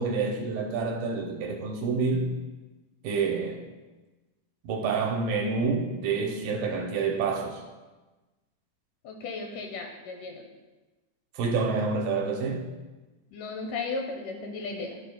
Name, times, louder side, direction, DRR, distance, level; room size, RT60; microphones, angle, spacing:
voice 1, 0.0-2.4 3.0-3.6 4.6-7.6 11.3-12.7, right 4 dB, 80° right, 2 dB, 2.2 m, -28 dB
voice 2, 9.0-10.4 13.3-15.0, left 3 dB, 75° left, 3 dB, 2.0 m, -35 dB
10.5 x 7.6 x 2.2 m, 1.2 s
omnidirectional pair, 4.1 m